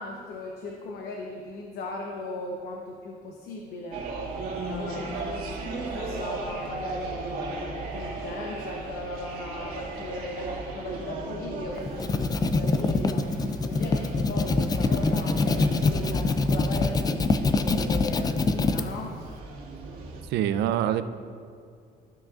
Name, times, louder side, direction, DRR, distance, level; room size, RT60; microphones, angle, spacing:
voice 1, 0.0-4.1 4.6-13.3 13.7-19.2, left 2 dB, 70° left, 1 dB, 0.9 m, -37 dB
sound 1, 3.9-20.2, right 3 dB, 60° right, 2.1 m, -36 dB
sound 2, 11.8-18.8, left 3 dB, 25° left, 0.4 m, -24 dB
voice 2, 20.3-21.1, right 10 dB, 80° right, 12 dB, 0.5 m, -25 dB
14.5 x 6.1 x 2.5 m, 2.3 s
cardioid pair, 110°, 17 cm